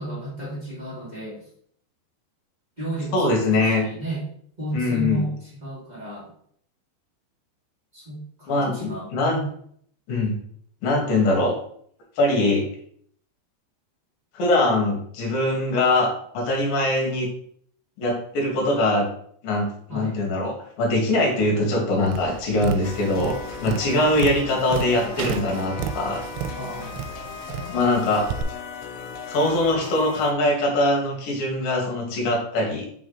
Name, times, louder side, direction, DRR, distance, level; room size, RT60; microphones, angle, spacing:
voice 1, 0.0-1.5 2.8-4.3 4.6-6.3 7.9-9.4 19.9-20.2 26.5-27.1, right 1 dB, 60° right, -10 dB, 0.4 m, -33 dB
voice 2, 3.1-3.8 4.7-5.3 8.5-9.4 10.1-10.4 10.8-11.5 12.2-12.6 14.3-16.1 16.3-17.3 18.0-19.1 19.4-26.2 27.7-28.3 29.3-32.9, left 2 dB, 65° left, -1 dB, 2.5 m, -22 dB
Tap, 22.0-28.4, right 8 dB, 90° right, 2.9 m, -33 dB
sound 1, 22.8-30.3, left 6 dB, 90° left, 2.9 m, -37 dB
5.8 x 4.3 x 3.8 m, 0.64 s
omnidirectional pair, 5.1 m